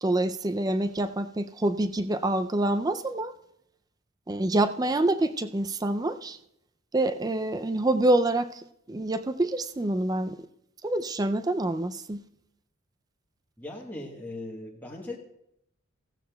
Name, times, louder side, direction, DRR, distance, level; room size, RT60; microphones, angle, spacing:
voice 1, 0.0-3.3 4.3-6.4 6.9-10.5 10.8-12.2, right 1 dB, 15° right, 0.3 m, -26 dB
voice 2, 13.6-15.2, left 2 dB, 10° left, 1.1 m, -38 dB
15.5 x 15.5 x 2.3 m
head